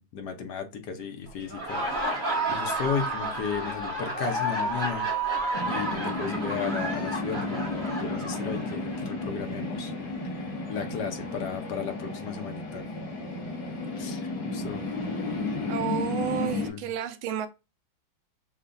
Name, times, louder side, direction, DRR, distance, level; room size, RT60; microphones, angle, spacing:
voice 1, 0.0-1.8 2.2-5.1 5.7-9.9 10.4-12.8 14.0-14.9 16.3-16.8, left 6 dB, 60° left, 1.3 m, -35 dB
Laughter, 1.4-9.0, right 2 dB, 30° right, 1.2 m, -31 dB
sound 1, 5.5-16.7, left 2 dB, 80° left, 2.7 m, -33 dB
voice 2, 15.7-17.5, right 10 dB, 85° right, 1.4 m, -31 dB
6.7 x 2.4 x 2.6 m
omnidirectional pair, 2.2 m